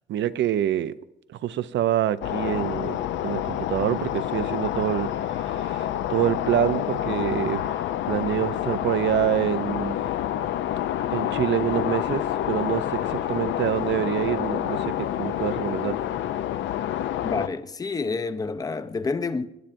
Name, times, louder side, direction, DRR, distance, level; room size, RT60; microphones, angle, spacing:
voice 1, 0.1-1.0 1.4-7.8 8.1-10.0 11.1-16.0, right 11 dB, 65° right, 0.5 m, -26 dB
sound 1, 2.2-17.5, left 11 dB, 70° left, 0.4 m, -28 dB
voice 2, 17.2-19.5, left 4 dB, 20° left, 0.5 m, -28 dB
19.0 x 10.5 x 2.6 m
cardioid pair, 90°, 20 cm